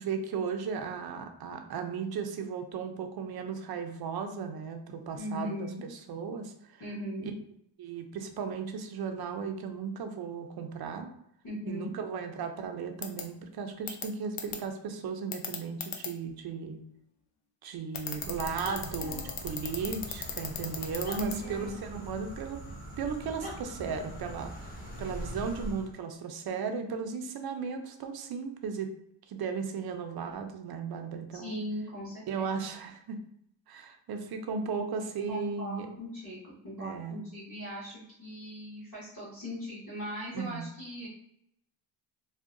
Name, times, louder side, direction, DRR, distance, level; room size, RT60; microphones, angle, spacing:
voice 1, 0.0-6.8 7.2-7.3 7.8-11.1 11.7-16.8 17.6-22.6 23.0-28.9 29.3-31.5 32.3-33.2 33.7-35.9 36.8-37.2 40.3-40.6, right 6 dB, 50° right, 6 dB, 0.5 m, -36 dB
voice 2, 5.2-5.9 6.8-7.3 11.4-11.9 21.1-21.8 31.3-32.4 35.3-41.1, equal, 40° left, -10 dB, 1.2 m, -39 dB
sound 1, 13.0-13.2 13.9-14.0 14.4-14.6 15.3-16.1 17.9-21.4, left 8 dB, 80° left, 0.6 m, -35 dB
sound 2, 18.0-25.9, equal, 20° left, 0.8 m, -42 dB
2.7 x 2.2 x 2.5 m, 0.74 s
cardioid pair, 95°, 48 cm